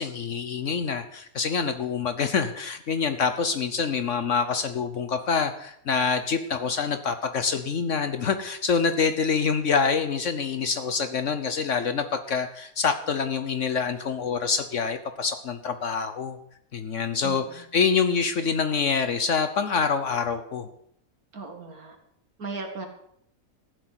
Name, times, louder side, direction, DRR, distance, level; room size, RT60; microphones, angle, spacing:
voice 1, 0.0-16.4 16.7-20.7, left 5 dB, 60° left, 9 dB, 1.2 m, -26 dB
voice 2, 21.3-22.0 22.4-22.9, right 3 dB, 85° right, 4 dB, 2.7 m, -36 dB
14.5 x 7.9 x 8.0 m, 0.72 s
omnidirectional pair, 1.5 m